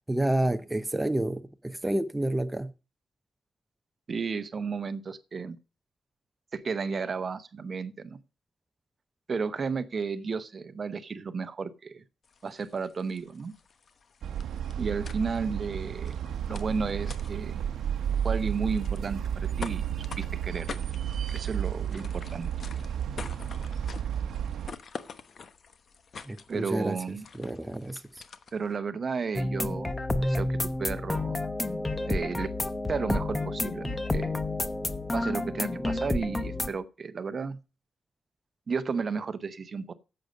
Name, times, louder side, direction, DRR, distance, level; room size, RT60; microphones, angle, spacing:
voice 1, 0.1-2.7 26.3-27.0 27.4-28.0, right 1 dB, 10° right, 0.7 m, -29 dB
voice 2, 4.1-5.6 6.5-8.2 9.3-12.0 12.4-13.5 14.8-16.2 16.5-17.6 18.2-20.8 21.3-22.5 26.5-27.3 28.5-29.9 30.2-31.4 32.1-32.5 32.9-34.3 35.1-37.6 38.7-39.9, right 5 dB, 40° right, 0.9 m, -33 dB
sound 1, 12.2-28.8, left 5 dB, 50° left, 1.0 m, -47 dB
sound 2, 14.2-24.7, right 9 dB, 85° right, 0.9 m, -32 dB
sound 3, 29.3-36.7, left 2 dB, 15° left, 0.9 m, -30 dB
10.5 x 7.9 x 5.1 m
cardioid pair, 110°, 0 cm